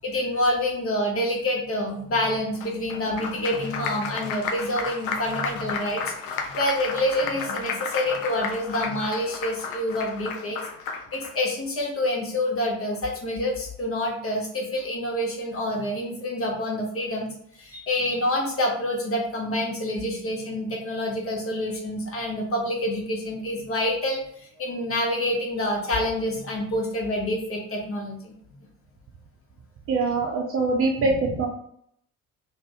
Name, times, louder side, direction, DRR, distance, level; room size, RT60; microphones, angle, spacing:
voice 1, 0.0-10.6 11.1-17.3 17.6-24.2 24.6-28.3, left 1 dB, 30° left, -1 dB, 0.9 m, -27 dB
Applause, 2.6-11.3, left 5 dB, 60° left, 0.5 m, -33 dB
voice 2, 29.9-31.5, right 3 dB, 35° right, 1 dB, 0.4 m, -23 dB
2.6 x 2.1 x 3.3 m, 0.68 s
figure-of-eight pair, 50°, 45 cm